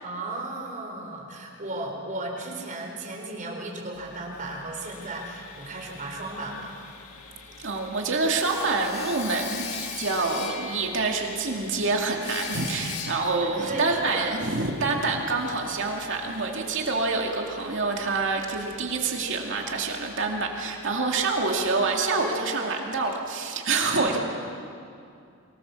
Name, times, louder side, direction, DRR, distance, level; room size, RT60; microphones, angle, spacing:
voice 1, 0.0-6.7 13.4-14.3, right 2 dB, 40° right, 0 dB, 4.2 m, -35 dB
Sawing, 3.9-21.8, left 5 dB, 90° left, 1.9 m, -42 dB
voice 2, 7.6-24.2, right 3 dB, 60° right, 1 dB, 2.4 m, -27 dB
24.0 x 19.0 x 7.0 m, 2.4 s
head